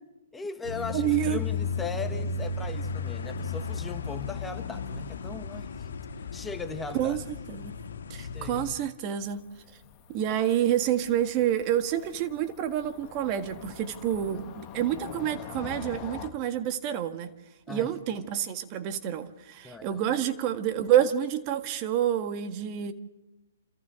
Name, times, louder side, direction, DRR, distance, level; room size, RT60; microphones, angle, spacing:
voice 1, 0.3-5.9 6.3-7.2 8.1-8.7 17.7-17.9 19.6-20.0, left 4 dB, 10° left, 1.4 m, -38 dB
sound 1, 0.6-8.7, left 5 dB, 70° left, 2.3 m, -34 dB
voice 2, 0.9-1.4 6.9-7.2 7.5-7.7 8.1-9.4 10.1-17.3 17.7-22.9, right 10 dB, 35° right, 1.6 m, -28 dB
Cricket / Motor vehicle (road), 9.2-16.3, left 9 dB, 30° left, 1.9 m, -45 dB
29.5 x 27.5 x 3.8 m
hypercardioid pair, 130°, 0 cm